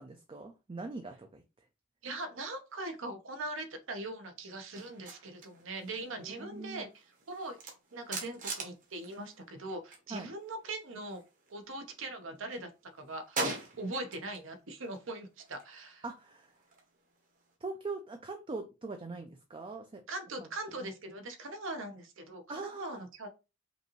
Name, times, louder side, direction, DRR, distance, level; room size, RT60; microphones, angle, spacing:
voice 1, 0.0-1.4 6.2-6.8 10.1-10.3 16.0-16.5 17.6-20.0 20.4-20.5 22.5-23.0, right 3 dB, 25° right, 0.4 m, -42 dB
voice 2, 2.0-7.6 7.9-11.2 11.5-16.0 20.1-23.3, right 2 dB, 65° right, 0.9 m, -41 dB
sound 1, 4.7-10.1 10.3-12.0 12.3-14.5 14.8-17.5, right 3 dB, 40° right, 1.1 m, -43 dB
5.2 x 2.6 x 3.0 m
head